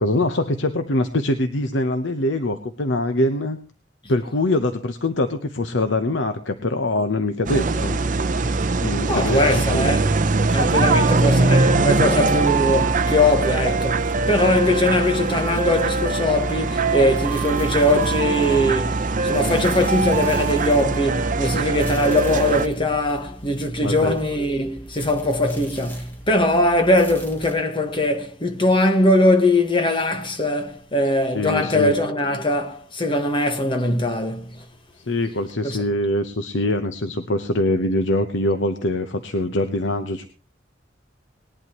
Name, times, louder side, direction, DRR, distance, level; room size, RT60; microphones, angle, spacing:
voice 1, 0.0-3.6 4.1-8.0 8.8-9.4 9.7-9.9 11.2-11.3 23.8-24.2 31.3-31.9 35.0-40.3, left 1 dB, 85° left, 0.9 m, -23 dB
sound 1, 7.5-22.7, right 3 dB, 45° right, 0.7 m, -21 dB
voice 2, 9.1-10.1 10.5-34.6 35.6-35.9, left 1 dB, 30° left, 1.5 m, -21 dB
sound 2, 14.8-27.5, right 1 dB, 10° left, 2.3 m, -41 dB
20.0 x 11.0 x 3.0 m
head